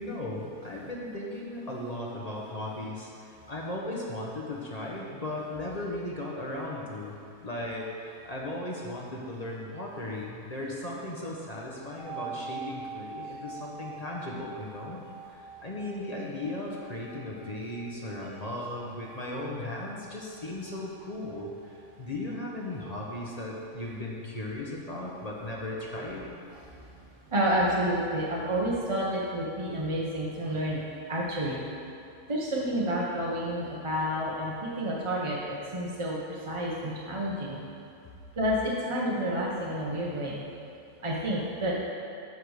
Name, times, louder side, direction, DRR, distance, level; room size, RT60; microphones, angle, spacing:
voice 1, 0.0-7.1 7.4-15.0 15.3-21.5 22.0-26.4, left 1 dB, 35° left, -3 dB, 0.8 m, -36 dB
sound 1, 12.0-21.7 22.0-22.1, right 5 dB, 60° left, 2.1 m, -44 dB
voice 2, 27.3-30.8 31.1-31.6 32.3-36.2 36.5-37.6 38.4-40.4 41.0-41.7, equal, 30° right, -5 dB, 0.6 m, -29 dB
9.3 x 3.5 x 6.3 m, 2.5 s
omnidirectional pair, 1.6 m